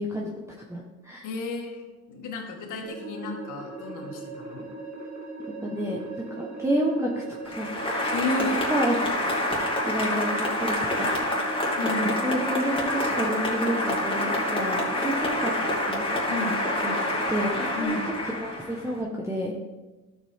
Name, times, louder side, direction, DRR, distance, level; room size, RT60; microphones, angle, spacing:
voice 1, 0.0-1.3 5.6-7.7 8.0-8.1 8.4-9.0 9.8-11.4 11.8-15.5 15.8-16.0 16.8-18.0 18.4-19.5, equal, 10° right, -2 dB, 1.4 m, -30 dB
voice 2, 1.2-4.7 8.1-8.7 11.8-12.2 16.3-16.6 17.7-18.0, left 2 dB, 80° left, 1 dB, 2.1 m, -33 dB
sound 1, 2.8-17.8, right 3 dB, 65° right, 2.2 m, -39 dB
Applause, 7.5-19.0, left 1 dB, 15° left, 2.9 m, -27 dB
12.0 x 7.6 x 3.7 m, 1.2 s
cardioid pair, 90°, 30 cm